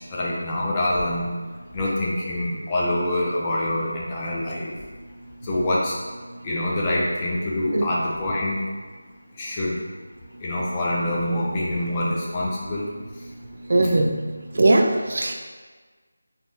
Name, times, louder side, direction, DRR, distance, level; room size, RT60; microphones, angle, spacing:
voice 1, 0.1-1.3 1.7-4.7 5.4-5.9 6.4-8.6 9.4-9.7 10.4-12.9, left 1 dB, 15° left, -5 dB, 0.4 m, -25 dB
voice 2, 13.7-14.2 14.6-15.3, right 2 dB, 50° right, 2 dB, 0.4 m, -19 dB
3.5 x 2.7 x 2.7 m, 1.4 s
figure-of-eight pair, 170°, 0 cm